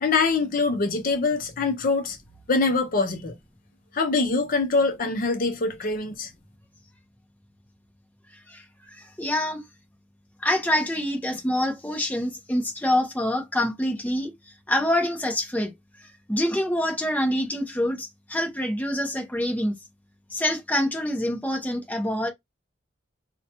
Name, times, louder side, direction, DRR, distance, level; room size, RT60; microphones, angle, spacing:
voice 1, 0.0-2.2 2.5-3.3 3.9-6.3, left 3 dB, 45° left, 0.5 m, -24 dB
voice 2, 8.5-9.6 10.4-14.3 14.7-15.7 16.0-19.7 20.3-22.3, left 1 dB, 10° left, 0.8 m, -26 dB
4.5 x 2.2 x 2.8 m
head